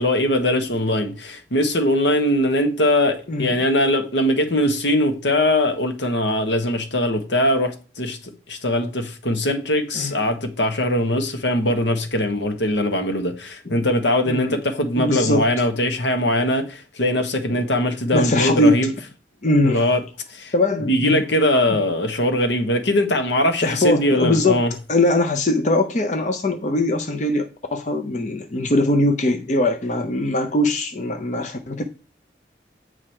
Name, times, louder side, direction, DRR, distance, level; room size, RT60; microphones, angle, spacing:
voice 1, 0.0-18.9 19.6-20.0 20.3-20.5 20.9-24.7, left 1 dB, 80° left, 1.2 m, -21 dB
voice 2, 14.3-14.6 14.9-15.5 17.5-17.6 18.1-18.9 19.4-19.8 20.5-21.2 21.7-21.8 23.6-31.8, left 1 dB, 40° left, 0.6 m, -21 dB
8.1 x 4.8 x 4.4 m
head